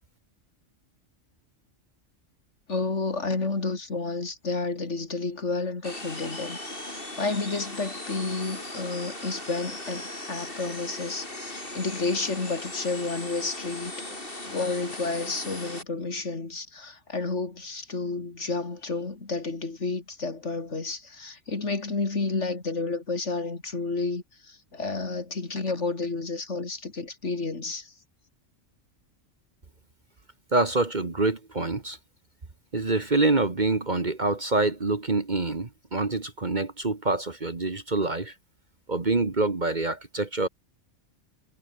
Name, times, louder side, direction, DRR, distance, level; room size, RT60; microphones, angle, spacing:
voice 1, 2.7-6.6 6.9-14.2 14.5-27.9, left 3 dB, 65° left, 3.4 m, -31 dB
sound 1, 5.8-15.8, left 1 dB, 45° left, 5.4 m, -38 dB
voice 2, 30.5-32.0 32.7-38.3 38.9-40.5, right 2 dB, 35° right, 1.8 m, -26 dB
omnidirectional pair, 1.3 m